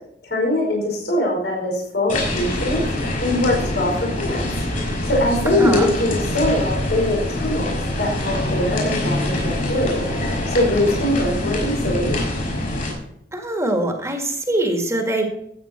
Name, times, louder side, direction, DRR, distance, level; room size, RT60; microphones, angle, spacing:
voice 1, 0.3-2.8 3.2-4.4 5.0-10.1 10.5-12.2, left 1 dB, 75° left, -2 dB, 4.9 m, -22 dB
sound 1, 2.1-12.9, left 1 dB, 50° left, 5.4 m, -24 dB
voice 2, 13.3-15.3, right 1 dB, 15° right, 3 dB, 1.9 m, -22 dB
15.0 x 8.9 x 4.4 m, 0.73 s
head